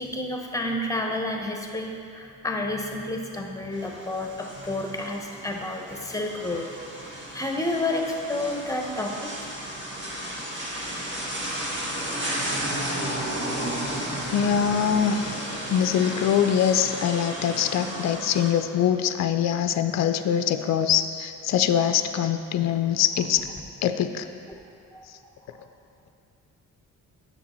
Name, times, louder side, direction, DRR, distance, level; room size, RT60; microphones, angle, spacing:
voice 1, 0.0-6.7 7.2-9.4 11.7-11.8 12.2-12.3 24.9-25.1, left 1 dB, 10° left, 2 dB, 0.9 m, -30 dB
sound 1, 3.7-18.5, right 1 dB, 35° right, 1.8 m, -33 dB
voice 2, 14.3-15.4 15.7-23.5 23.8-24.2, left 9 dB, 55° left, 9 dB, 0.5 m, -23 dB
8.6 x 6.7 x 4.3 m, 2.5 s
cardioid pair, 95°, 34 cm